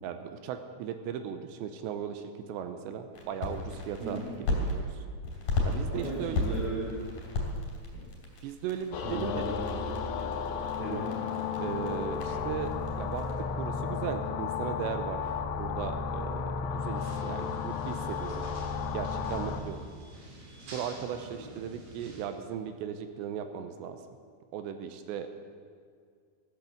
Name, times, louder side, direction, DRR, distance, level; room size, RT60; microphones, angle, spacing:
voice 1, 0.0-4.2 4.5-5.0 5.7-6.4 8.4-9.5 11.6-12.7 13.0-18.5 18.9-19.8 20.7-24.0 24.5-25.3, right 8 dB, 80° right, 8 dB, 2.8 m, -37 dB
sound 1, 3.1-4.7 5.2-13.3, left 2 dB, 45° left, 3.8 m, -35 dB
voice 2, 5.8-6.9 9.0-9.9 10.8-11.1, right 2 dB, 25° right, -8 dB, 3.4 m, -36 dB
sound 2, 8.9-19.6, left 6 dB, 80° left, 2.8 m, -33 dB
sound 3, 16.9-22.2, right 1 dB, 55° right, 4.4 m, -48 dB
15.0 x 10.5 x 7.4 m, 2.1 s
omnidirectional pair, 5.6 m